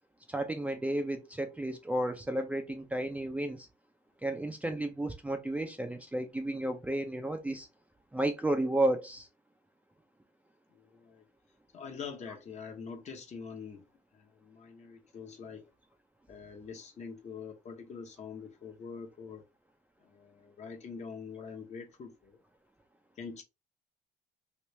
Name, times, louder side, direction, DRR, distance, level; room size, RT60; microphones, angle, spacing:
voice 1, 0.3-3.7 4.2-7.7 8.1-9.3, right 1 dB, 10° right, 0.5 m, -32 dB
voice 2, 10.7-11.3 11.7-13.8 14.1-15.7 16.3-19.4 20.0-22.4 23.2-23.4, left 5 dB, 40° left, 0.9 m, -45 dB
3.1 x 2.5 x 3.2 m
cardioid pair, 110°, 17 cm